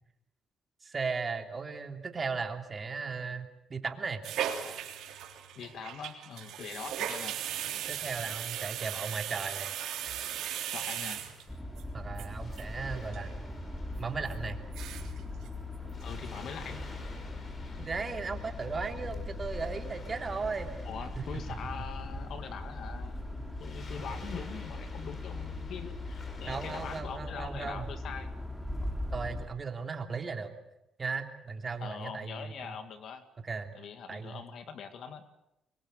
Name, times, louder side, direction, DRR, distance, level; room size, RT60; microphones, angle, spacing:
voice 1, 0.8-4.2 7.9-9.7 11.9-13.3 14.0-14.6 17.8-20.7 21.5-21.6 26.5-27.9 29.1-30.5 31.0-32.8 33.4-33.7 34.1-34.4, right 4 dB, 35° right, 5 dB, 3.1 m, -36 dB
sound 1, 4.2-11.8 12.2-12.3 12.5-12.6 12.9-13.3 13.6-13.7 14.3-14.4 14.6-15.2 15.5-15.6 15.9-16.4 16.7-16.9, right 10 dB, 85° right, 3.6 m, -37 dB
voice 2, 5.6-7.4 10.7-11.2 16.0-16.8 20.9-28.3 31.8-33.2 33.7-35.2, left 6 dB, 70° left, 9 dB, 2.1 m, -43 dB
Waves surf, 7.6-27.0, left 3 dB, 45° left, 5.9 m, -53 dB
sound 2, 11.5-29.5, left 2 dB, 5° left, 3.1 m, -40 dB
24.0 x 22.5 x 8.0 m, 0.86 s
cardioid pair, 90°, 0 cm